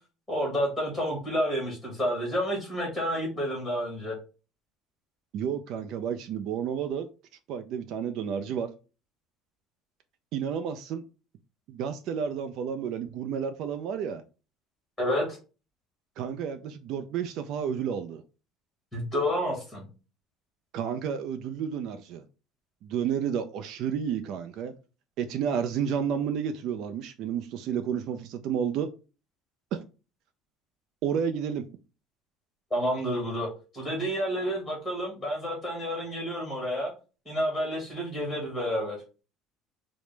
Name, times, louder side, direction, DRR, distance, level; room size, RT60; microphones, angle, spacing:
voice 1, 0.3-4.1 15.0-15.4 18.9-19.8 32.7-33.5 33.7-36.9 37.2-39.0, equal, ahead, 1.4 m, -29 dB
voice 2, 5.3-7.1 7.5-8.7 10.3-11.0 11.7-14.2 16.2-18.2 20.7-22.2 22.8-24.7 25.2-28.9 29.7-29.8 31.0-31.6, right 8 dB, 55° right, 0.3 m, -31 dB
4.7 x 2.0 x 3.2 m
cardioid pair, 155°, 0 cm